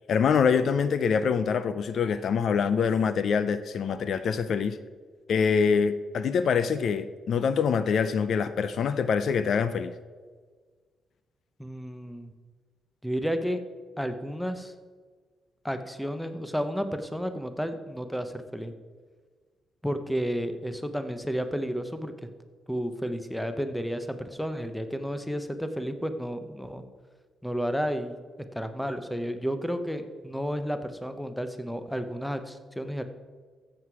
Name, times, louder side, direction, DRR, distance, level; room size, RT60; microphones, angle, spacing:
voice 1, 0.1-4.8 5.3-9.9, left 6 dB, 55° left, 0.5 m, -25 dB
voice 2, 11.6-12.3 13.0-13.6 14.0-14.7 15.6-18.7 19.8-22.1 22.7-26.8 27.4-28.2 28.5-33.0, equal, ahead, 0.8 m, -32 dB
14.0 x 7.8 x 4.8 m
cardioid pair, 140°, 0 cm